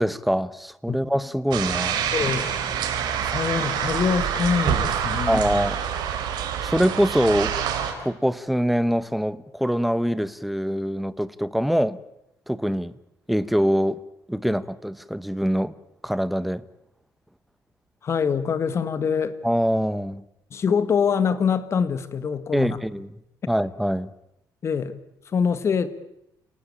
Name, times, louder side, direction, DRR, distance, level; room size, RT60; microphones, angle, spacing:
voice 1, 0.0-2.1 5.3-5.8 6.6-7.5 8.0-12.0 12.5-12.9 13.3-14.0 14.3-15.7 16.0-16.6 19.4-20.2 22.5-23.1 23.5-24.1, equal, ahead, 1.0 m, -24 dB
sound 1, 1.5-7.9, right 8 dB, 85° right, 4.5 m, -26 dB
voice 2, 2.1-2.5 3.2-5.4 18.0-19.4 20.5-22.8 24.6-25.0 25.3-25.9, left 6 dB, 40° left, 1.9 m, -24 dB
29.5 x 18.5 x 8.8 m
cardioid pair, 140°, 7 cm